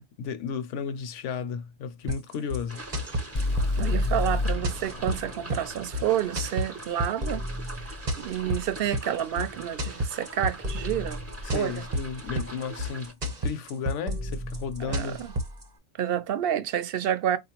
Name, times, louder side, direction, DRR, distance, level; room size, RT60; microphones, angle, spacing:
voice 1, 0.0-2.8 11.4-13.2 13.4-15.2, left 6 dB, 75° left, 0.9 m, -34 dB
sound 1, 2.1-15.6, equal, 40° right, 0.9 m, -32 dB
sound 2, 2.7-13.1, right 1 dB, 20° right, 0.4 m, -43 dB
sound 3, 3.3-7.3, left 2 dB, 45° left, 0.4 m, -30 dB
voice 2, 3.8-7.4 8.2-11.2 11.5-11.8 14.8-15.3 16.0-17.4, right 10 dB, 60° right, 0.6 m, -29 dB
3.9 x 2.4 x 2.9 m
omnidirectional pair, 1.3 m